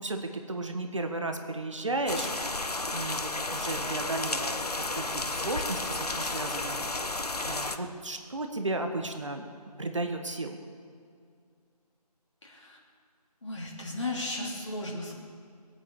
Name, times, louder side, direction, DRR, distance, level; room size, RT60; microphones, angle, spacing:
voice 1, 0.0-2.3 2.9-4.6 4.9-9.4 9.8-10.6, right 2 dB, 50° right, 5 dB, 1.4 m, -34 dB
sound 1, 2.1-7.8, left 2 dB, 70° left, 1.1 m, -32 dB
voice 2, 12.4-12.8 13.4-15.2, left 2 dB, 45° left, -3 dB, 3.4 m, -35 dB
20.5 x 8.7 x 7.1 m, 2.2 s
figure-of-eight pair, 160°, 21 cm